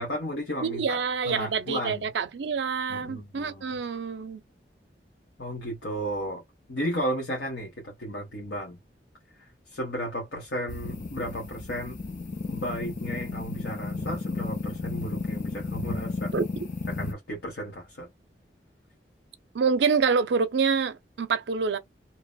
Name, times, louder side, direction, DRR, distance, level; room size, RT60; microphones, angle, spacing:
voice 1, 0.0-2.1 2.9-3.8 5.4-6.4 6.7-8.8 9.3-12.0 12.4-16.3 16.9-18.1, equal, 85° left, 1.1 m, -34 dB
voice 2, 0.6-4.4 16.3-16.4 19.5-21.8, right 5 dB, 80° right, 0.5 m, -26 dB
sound 1, 10.7-17.1, left 3 dB, 45° left, 0.5 m, -33 dB
2.8 x 2.1 x 2.3 m
head